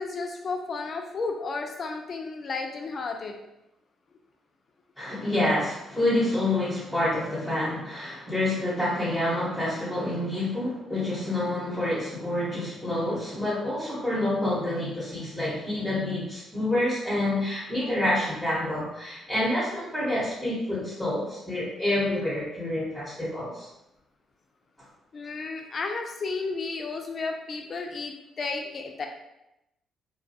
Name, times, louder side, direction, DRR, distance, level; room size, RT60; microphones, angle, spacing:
voice 1, 0.0-3.3 25.1-29.1, left 4 dB, 45° left, 3 dB, 0.4 m, -33 dB
voice 2, 5.0-23.7, left 1 dB, ahead, -10 dB, 0.9 m, -28 dB
2.3 x 2.2 x 2.7 m, 0.88 s
cardioid pair, 90°, 0 cm